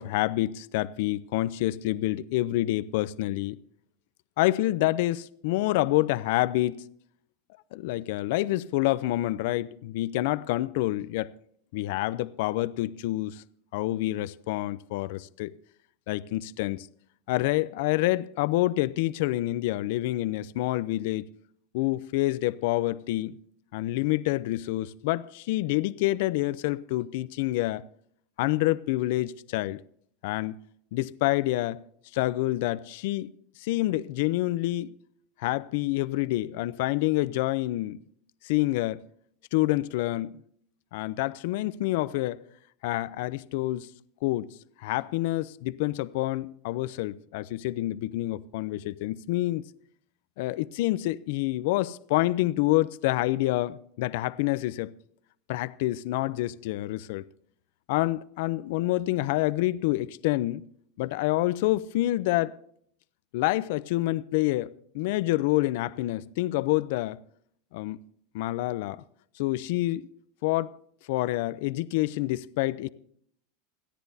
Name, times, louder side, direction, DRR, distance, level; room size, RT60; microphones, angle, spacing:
voice 1, 0.0-3.6 4.4-6.9 7.7-11.3 11.7-13.4 13.7-15.5 16.1-16.9 17.3-21.2 21.7-23.4 23.7-27.8 28.4-29.8 30.2-30.6 30.9-31.8 32.1-33.3 33.6-34.9 35.4-38.0 38.4-39.0 39.5-40.4 40.9-42.4 42.8-43.9 44.2-44.5 44.8-49.6 50.4-54.9 55.5-57.2 57.9-60.6 61.0-62.5 63.3-67.2 67.7-68.0 68.3-69.0 69.4-70.1 70.4-70.7 71.1-72.9, left 17 dB, 70° left, 0.6 m, -27 dB
28.0 x 10.0 x 2.8 m
supercardioid pair, 120°, 0 cm